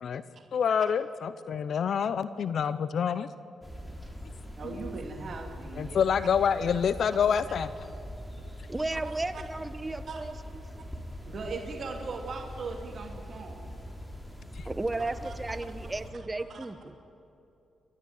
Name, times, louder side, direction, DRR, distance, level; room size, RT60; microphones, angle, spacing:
voice 1, 0.5-3.3 5.8-7.7 14.6-14.7, left 7 dB, 65° left, 14 dB, 0.7 m, -27 dB
sound 1, 3.6-16.1, equal, 5° left, 3.8 m, -42 dB
voice 2, 4.6-6.3 8.9-9.2 10.1-10.2 11.3-13.7 15.0-15.4 15.8-15.9 16.5-16.7, right 4 dB, 55° right, 3 dB, 2.6 m, -39 dB
voice 3, 8.7-10.3 14.6-16.9, right 2 dB, 20° right, 11 dB, 1.3 m, -34 dB
28.5 x 13.0 x 9.5 m, 2.7 s
cardioid pair, 80°, 0 cm